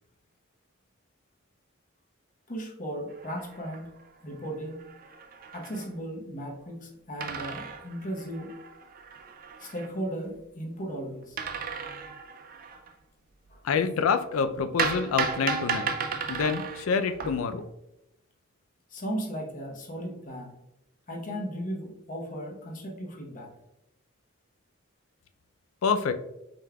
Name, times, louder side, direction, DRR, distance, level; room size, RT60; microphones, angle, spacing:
voice 1, 2.5-3.9 4.2-4.9 5.5-8.5 9.6-11.4 13.5-13.6 18.9-20.6 21.1-23.5, equal, 40° left, 1 dB, 0.8 m, -36 dB
sound 1, 3.1-4.1 4.5-4.6 4.7-5.9 7.2-9.9 11.4-12.9 14.8-17.6, right 5 dB, 45° right, 0.4 m, -34 dB
voice 2, 13.6-15.9 16.3-17.6 25.8-26.1, left 5 dB, 80° left, 9 dB, 0.4 m, -27 dB
5.3 x 3.5 x 2.2 m, 0.87 s
head